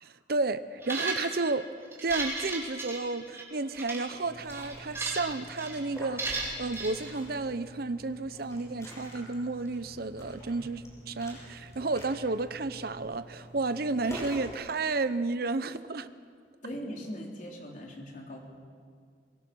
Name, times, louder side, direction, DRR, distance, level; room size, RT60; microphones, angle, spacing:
voice 1, 0.0-1.7 2.0-16.1, right 3 dB, 60° right, 12 dB, 0.8 m, -32 dB
sound 1, 0.8-1.5 1.9-3.4 3.7-4.0 4.5-5.3 5.6-5.8 6.2-6.9, right 3 dB, 15° right, 4.4 m, -34 dB
Liquid, 4.2-14.5, equal, 15° left, 6.7 m, -46 dB
voice 2, 16.6-18.5, equal, 45° left, -1 dB, 3.9 m, -40 dB
23.5 x 23.0 x 6.4 m, 2.1 s
head